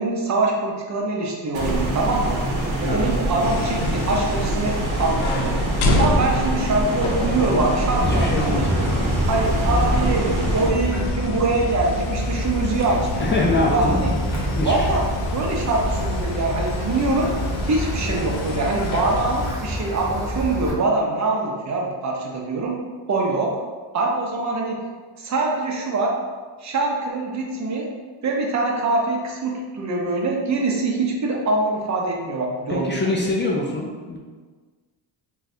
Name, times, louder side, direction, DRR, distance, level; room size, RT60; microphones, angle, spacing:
voice 1, 0.0-2.4 2.8-5.6 6.0-8.9 9.3-13.3 13.7-14.1 14.6-15.0 15.3-17.3 17.6-22.8 23.1-23.5 23.9-24.8 25.2-26.1 26.6-27.9 28.2-32.9, right 3 dB, 35° right, -1 dB, 0.7 m, -24 dB
sound 1, 1.5-10.7, right 1 dB, 75° right, 0.9 m, -25 dB
sound 2, 3.4-19.6, left 3 dB, 85° left, 0.6 m, -29 dB
voice 2, 8.0-9.1 13.1-14.0 14.6-14.9 32.7-34.2, left 2 dB, 25° left, -2 dB, 0.3 m, -24 dB
Wind, 8.0-20.7, equal, 5° right, 0.9 m, -27 dB
2.6 x 2.3 x 4.1 m, 1.4 s
cardioid pair, 115°, 48 cm